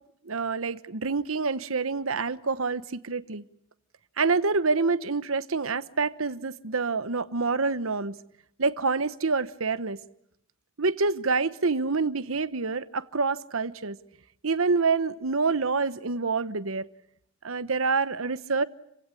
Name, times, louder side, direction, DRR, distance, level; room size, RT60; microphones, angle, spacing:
voice 1, 0.3-3.4 4.2-8.1 8.6-10.0 10.8-14.0 14.4-16.9 17.4-18.6, right 4 dB, 85° right, 1.1 m, -27 dB
30.0 x 17.0 x 9.9 m
head